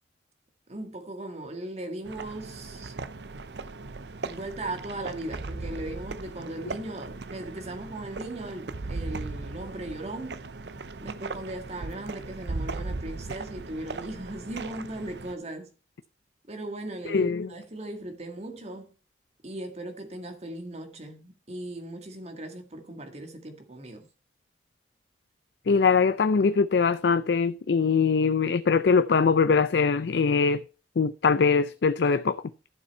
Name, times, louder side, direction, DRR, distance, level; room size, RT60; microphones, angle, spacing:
voice 1, 0.7-3.0 4.2-10.4 11.0-15.7 16.5-18.9 19.4-24.1, right 1 dB, 40° right, 1.8 m, -38 dB
sound 1, 2.1-15.3, right 3 dB, 75° right, 0.7 m, -38 dB
voice 2, 17.1-17.5 25.7-30.6 31.0-32.4, left 5 dB, 70° left, 0.4 m, -22 dB
12.0 x 7.1 x 4.4 m
head